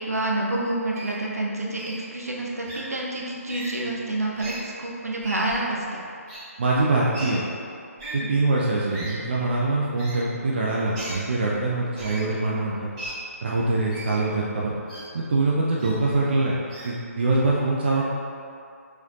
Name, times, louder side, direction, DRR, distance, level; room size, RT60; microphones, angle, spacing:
voice 1, 0.0-6.0 8.0-8.3, right 2 dB, 70° right, -3 dB, 0.8 m, -28 dB
Wild animals, 0.9-1.1 1.8-2.0 2.6-2.8 3.5-3.7 4.3-4.6 5.2-5.6 6.3-6.4 7.1-7.3 8.0-8.1 8.9-9.1 10.0-10.2 10.9-11.2 11.9-12.2 13.0-13.1 13.9-14.1 14.9-15.0 15.8-15.9 16.7-16.9, right 1 dB, 20° right, 1.5 m, -37 dB
voice 2, 6.6-7.4 8.1-12.8 13.4-14.7 15.1-16.5 16.8-18.0, right 2 dB, 40° right, -5 dB, 0.5 m, -23 dB
4.4 x 4.3 x 2.7 m, 2.4 s
figure-of-eight pair, 145°, 8 cm